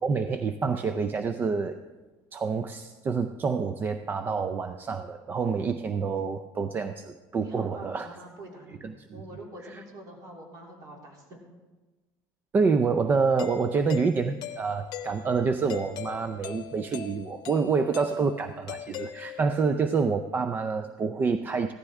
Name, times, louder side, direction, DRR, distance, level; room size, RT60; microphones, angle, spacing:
voice 1, 0.0-1.8 2.3-8.1 8.7-9.2 9.6-9.8 12.5-21.7, right 5 dB, 25° right, 9 dB, 0.4 m, -27 dB
voice 2, 7.4-11.4, right 1 dB, 45° right, 0 dB, 3.0 m, -45 dB
Doorbell, 13.4-19.7, left 10 dB, 55° left, 0.8 m, -41 dB
15.5 x 13.0 x 3.6 m, 1.2 s
cardioid pair, 155°, 9 cm